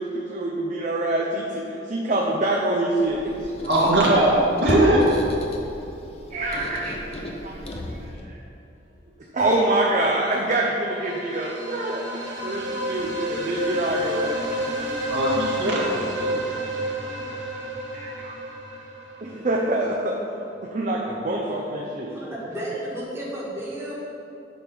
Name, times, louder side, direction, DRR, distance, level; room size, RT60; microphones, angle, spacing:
voice 1, 0.0-3.5 4.1-4.3 4.7-4.8 6.3-7.8 8.3-8.4 9.3-14.2 17.0-17.4 17.9-18.3 19.1-20.2 20.7-22.1, right 1 dB, 45° right, -1 dB, 0.7 m, -26 dB
Squeak, 3.0-8.3, left 1 dB, 35° left, 0.7 m, -32 dB
voice 2, 3.7-5.1 15.1-16.3, right 1 dB, 65° right, -5 dB, 1.8 m, -20 dB
sound 1, 10.9-19.7, right 1 dB, 85° right, 1.1 m, -30 dB
voice 3, 22.1-23.9, right 1 dB, 15° right, -8 dB, 1.8 m, -32 dB
8.9 x 3.6 x 6.2 m, 2.8 s
head